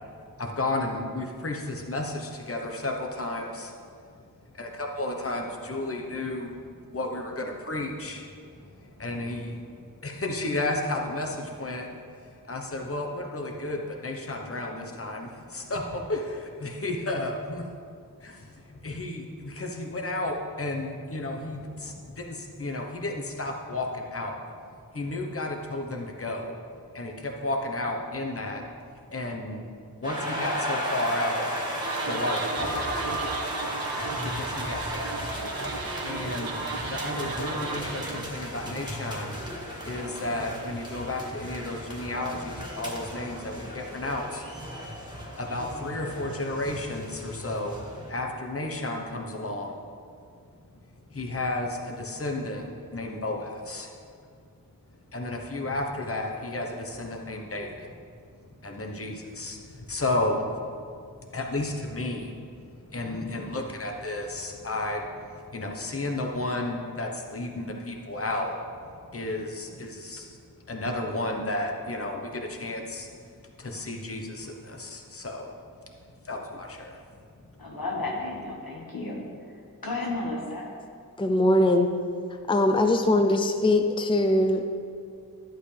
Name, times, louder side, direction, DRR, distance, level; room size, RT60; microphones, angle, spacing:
voice 1, 0.4-3.7 4.6-6.5 6.9-8.6 9.0-9.6 10.0-11.9 12.5-17.6 18.2-18.4 18.8-24.4 24.9-26.5 26.9-28.6 29.1-29.7 30.0-31.4 32.1-32.8 34.2-35.0 35.6-35.8 36.0-36.5 36.9-39.4 39.8-44.4 45.4-47.8 48.1-49.8 51.1-52.6 52.9-53.9 55.1-57.9 58.6-59.6 59.9-60.5 61.3-62.3 62.9-65.1 65.5-68.5 69.1-70.3 70.7-73.1 73.6-75.5 76.3-77.0, left 2 dB, 40° left, 2 dB, 1.0 m, -32 dB
sound 1, 30.0-48.1, equal, 10° right, 2.2 m, -35 dB
sound 2, 31.8-38.2, right 4 dB, 80° right, 0.7 m, -35 dB
voice 2, 77.6-80.7, left 2 dB, 80° left, -2 dB, 1.7 m, -33 dB
voice 3, 81.2-81.9 82.5-84.6, left 1 dB, 15° left, 6 dB, 0.5 m, -21 dB
11.5 x 8.0 x 3.4 m, 2.2 s
wide cardioid pair, 45°, 35 cm